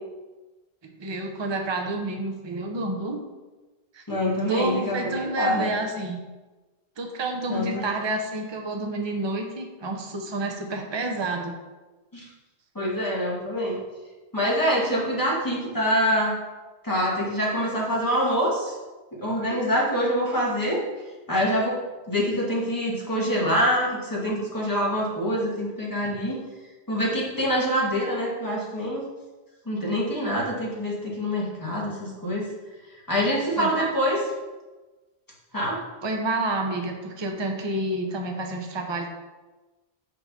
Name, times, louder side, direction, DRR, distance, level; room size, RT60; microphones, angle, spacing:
voice 1, 0.8-3.2 3.9-4.0 4.3-6.2 7.0-11.6 33.6-33.9 36.0-39.1, right 2 dB, 30° right, 2 dB, 0.8 m, -29 dB
voice 2, 4.1-5.7 7.5-7.8 12.1-12.3 12.8-13.8 14.3-16.3 16.8-18.7 19.2-20.8 21.3-21.8 22.1-26.4 26.9-29.1 29.7-32.4 33.1-34.2 35.5-35.8, equal, 20° left, -5 dB, 1.7 m, -25 dB
6.3 x 4.7 x 5.2 m, 1.2 s
omnidirectional pair, 1.1 m